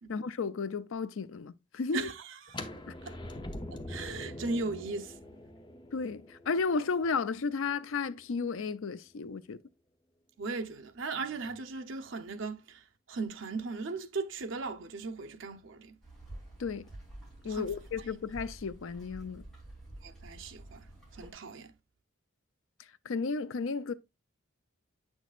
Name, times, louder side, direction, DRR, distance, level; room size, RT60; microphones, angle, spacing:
voice 1, 0.1-2.1 2.9-3.0 5.9-9.6 16.6-16.9 17.4-19.4 23.1-23.9, left 4 dB, 75° left, 0.5 m, -33 dB
voice 2, 1.9-2.6 3.0-3.1 3.9-5.1 10.4-12.8 13.1-15.9 17.5-17.7 20.0-20.8 21.1-21.7, right 3 dB, 70° right, 0.8 m, -37 dB
sound 1, 2.5-8.3, left 1 dB, 20° left, 0.6 m, -44 dB
sound 2, 16.0-21.3, right 1 dB, ahead, 3.6 m, -49 dB
8.1 x 6.2 x 2.4 m
head